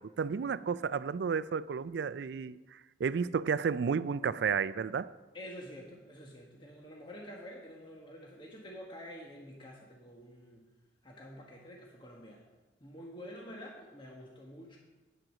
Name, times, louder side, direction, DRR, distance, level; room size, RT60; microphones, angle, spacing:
voice 1, 0.0-5.1, right 6 dB, 70° right, 17 dB, 0.4 m, -32 dB
voice 2, 5.3-10.6 11.0-12.4 12.8-14.8, equal, 25° left, -1 dB, 1.3 m, -48 dB
9.0 x 7.6 x 6.3 m, 1.2 s
head